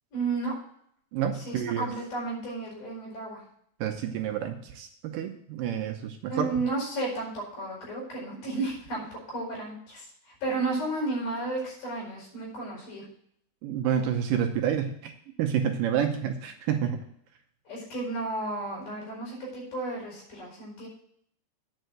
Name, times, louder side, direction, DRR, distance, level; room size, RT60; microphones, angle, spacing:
voice 1, 0.1-0.5 1.3-3.4 6.3-13.0 17.7-20.9, right 2 dB, 60° left, -4 dB, 6.2 m, -33 dB
voice 2, 1.1-1.9 3.8-6.5 13.6-15.1 15.4-17.0, right 9 dB, 75° right, 4 dB, 2.3 m, -29 dB
9.1 x 5.5 x 7.8 m, 0.67 s
omnidirectional pair, 4.3 m